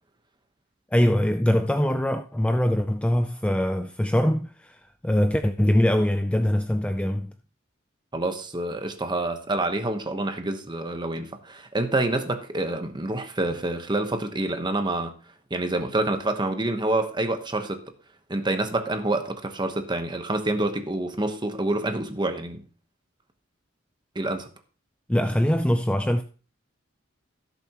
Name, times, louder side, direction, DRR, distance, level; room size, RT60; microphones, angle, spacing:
voice 1, 0.9-7.3 25.1-26.2, equal, 5° left, 0.4 m, -23 dB
voice 2, 8.1-15.1 15.5-17.8 18.3-22.6 24.1-24.5, right 2 dB, 20° right, 1.1 m, -27 dB
17.0 x 7.0 x 3.0 m
head